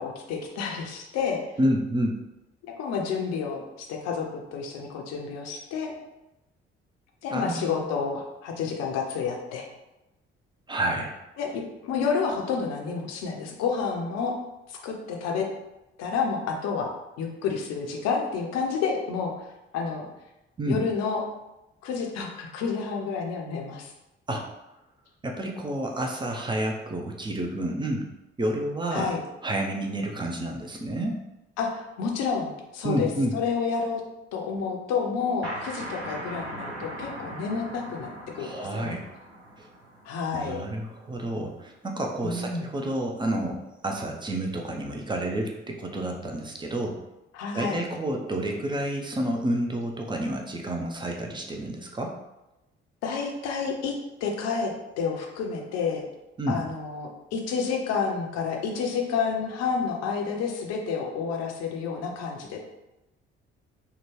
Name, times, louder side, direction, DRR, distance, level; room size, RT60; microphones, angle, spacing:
voice 1, 0.0-1.4 2.7-4.3 4.5-5.9 7.2-9.7 11.4-14.3 14.7-15.5 16.0-16.9 17.2-19.4 19.7-20.1 20.7-21.2 21.8-23.9 28.9-29.2 31.6-34.0 34.3-39.0 40.1-40.6 42.2-42.7 47.3-47.8 53.0-53.9 54.2-54.7 55.0-56.1 56.5-62.6, left 5 dB, 55° left, 1 dB, 0.7 m, -29 dB
voice 2, 1.6-2.2 7.3-8.0 10.7-11.2 20.6-20.8 24.3-24.5 25.2-28.1 28.4-29.1 29.4-31.2 32.8-33.4 38.4-39.1 39.6-39.7 40.3-47.0 47.5-52.1 56.4-56.6, right 1 dB, 15° right, 1 dB, 0.5 m, -29 dB
sound 1, 35.4-40.8, right 1 dB, 85° right, 0.6 m, -39 dB
3.6 x 2.2 x 3.0 m, 0.96 s
figure-of-eight pair, 45°, 32 cm